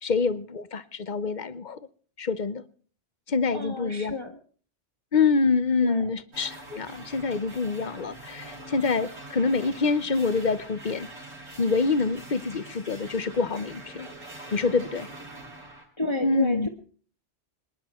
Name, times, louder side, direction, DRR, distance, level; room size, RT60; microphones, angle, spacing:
voice 1, 0.0-1.8 2.2-2.6 3.3-4.1 5.1-11.1 11.6-14.1 14.5-15.1 16.2-16.7, left 4 dB, 45° left, 15 dB, 1.0 m, -26 dB
voice 2, 3.5-4.3 5.8-6.0 16.0-16.7, left 3 dB, 25° left, 2 dB, 1.6 m, -31 dB
sound 1, 6.3-15.9, right 2 dB, 70° right, 5.1 m, -44 dB
26.0 x 10.5 x 4.4 m, 0.43 s
omnidirectional pair, 1.2 m